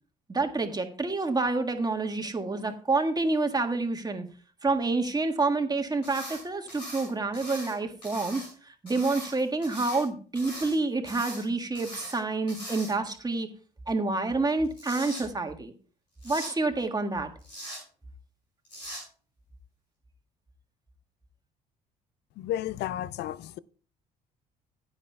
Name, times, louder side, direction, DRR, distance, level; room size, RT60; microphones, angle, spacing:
voice 1, 0.3-4.3 4.6-13.5 13.9-15.7 16.2-17.3, right 3 dB, 20° right, 1.6 m, -28 dB
sound 1, 6.0-6.4 6.7-7.7 8.0-8.5 8.9-10.0 10.3-10.7 11.0-11.4 11.7-12.2 12.5-13.1 14.5-15.2 16.2-16.5 17.4-17.8 18.6-19.0, right 1 dB, 85° left, 6.4 m, -41 dB
voice 2, 22.5-23.6, left 12 dB, 55° left, 0.5 m, -32 dB
16.0 x 9.7 x 2.3 m
hypercardioid pair, 50°, 21 cm